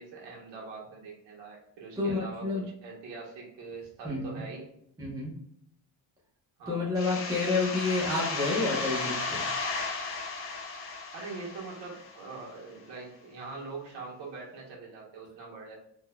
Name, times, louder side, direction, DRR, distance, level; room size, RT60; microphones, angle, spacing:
voice 1, 0.0-4.7 6.6-6.9 11.1-15.8, right 3 dB, 75° right, -3 dB, 1.4 m, -43 dB
voice 2, 2.0-2.6 4.0-4.4 5.0-5.3 6.7-9.4, left 3 dB, 10° right, -5 dB, 0.8 m, -29 dB
sound 1, 6.9-12.4, left 3 dB, 30° left, 0.5 m, -34 dB
3.8 x 2.7 x 2.2 m, 0.74 s
cardioid pair, 170°, 44 cm